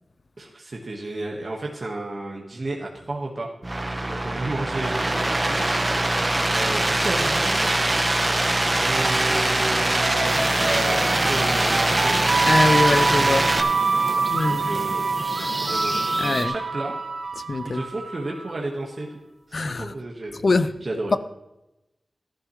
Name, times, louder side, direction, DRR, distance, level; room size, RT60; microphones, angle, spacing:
voice 1, 0.4-5.9 6.5-7.7 8.8-12.3 12.8-13.0 13.5-15.1 15.4-16.9 17.6-19.1 19.8-20.4 20.8-21.2, right 2 dB, 50° right, 1.5 m, -33 dB
sound 1, 3.6-13.6, right 2 dB, 30° right, 1.1 m, -23 dB
sound 2, 8.8-18.5, right 4 dB, 85° right, 1.5 m, -26 dB
sound 3, 10.3-16.5, right 1 dB, 10° right, 1.6 m, -33 dB
voice 2, 12.5-13.5 14.3-14.6 16.2-16.5 17.5-17.8 19.5-19.9 20.4-20.7 21.1-21.2, left 3 dB, 55° left, 0.5 m, -22 dB
14.0 x 12.0 x 3.2 m
wide cardioid pair, 90°, 0 cm